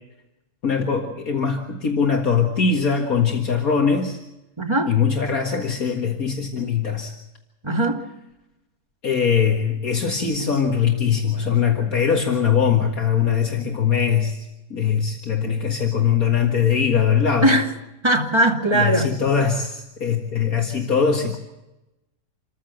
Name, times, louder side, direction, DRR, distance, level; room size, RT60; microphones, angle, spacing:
voice 1, 0.6-4.2 4.9-7.1 9.0-14.4 14.7-17.5 18.7-21.4, left 7 dB, 65° left, 2.3 m, -21 dB
voice 2, 4.6-4.9 7.6-8.1 17.4-17.7 18.0-19.1, right 1 dB, 15° right, 2.4 m, -19 dB
27.5 x 14.5 x 7.8 m
omnidirectional pair, 1.6 m